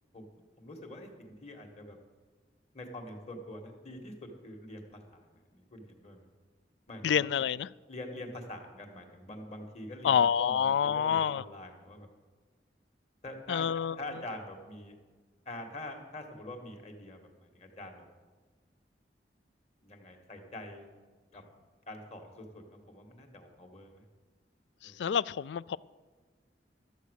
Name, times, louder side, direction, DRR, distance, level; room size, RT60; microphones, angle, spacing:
voice 1, 0.6-2.0 2.7-6.2 6.9-7.3 7.9-12.1 13.2-13.7 14.0-14.9 15.5-18.0 19.8-20.9 21.3-21.4 21.9-24.0 24.8-25.0, left 1 dB, 40° left, 1.8 m, -45 dB
voice 2, 7.0-7.7 10.0-11.4 13.5-14.0 24.8-25.8, left 8 dB, 80° left, 0.3 m, -27 dB
13.5 x 8.1 x 6.5 m
head